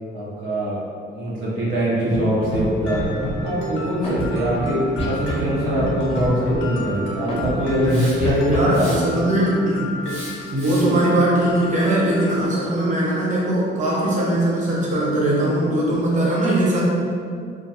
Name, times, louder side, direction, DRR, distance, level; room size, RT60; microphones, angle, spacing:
voice 1, 0.1-0.8 1.1-3.1 3.4-9.3, equal, 70° right, -8 dB, 0.7 m, -22 dB
Scratching (performance technique), 2.1-2.2 2.4-2.6 2.9-3.3 4.0-4.6 5.0-5.4 5.7-5.9 6.2-6.6 7.3-7.8 8.2-8.6, equal, 30° left, 0.6 m, -27 dB
Mallet percussion, 2.9-12.4, right 1 dB, 80° left, 0.5 m, -32 dB
Hiss, 7.8-8.4 8.7-9.3 10.0-11.0, right 1 dB, 85° right, 1.1 m, -37 dB
voice 2, 8.4-10.2 10.5-16.8, right 1 dB, 40° right, -6 dB, 0.8 m, -20 dB
2.2 x 2.2 x 2.8 m, 2.2 s
cardioid pair, 90°, 20 cm